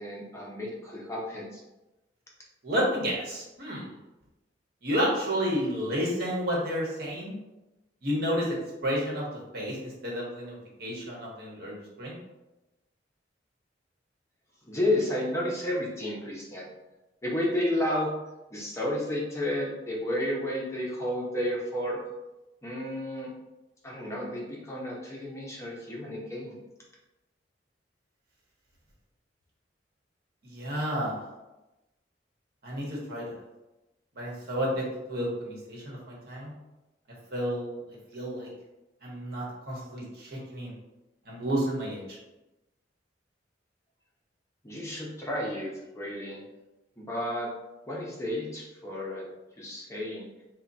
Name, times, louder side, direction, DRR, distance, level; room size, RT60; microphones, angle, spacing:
voice 1, 0.0-1.6 14.6-16.7 17.2-18.2 18.5-22.0 22.6-23.3 23.8-26.6 44.6-46.4 47.0-47.5 47.9-49.3 49.6-50.3, left 1 dB, 15° left, -4 dB, 0.6 m, -31 dB
voice 2, 2.6-3.9 4.8-7.4 8.0-8.5 8.8-9.3 9.5-12.2 30.4-31.2 32.6-33.2 34.1-36.5 37.3-37.8 38.1-38.5 39.0-40.7 41.3-42.2, equal, 60° right, -4 dB, 1.1 m, -31 dB
3.4 x 2.2 x 4.0 m, 1.0 s
head